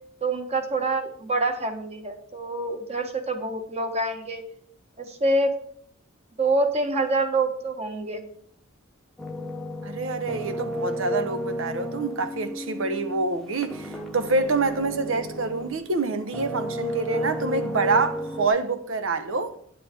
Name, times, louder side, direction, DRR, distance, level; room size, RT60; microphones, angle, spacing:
voice 1, 0.2-4.4 5.0-5.5 6.4-8.2, right 2 dB, 30° right, 1.3 m, -26 dB
sound 1, 9.2-15.9 16.3-18.5, equal, ahead, 1.0 m, -33 dB
voice 2, 9.8-19.5, right 3 dB, 75° right, 1.0 m, -26 dB
9.5 x 7.6 x 4.5 m
head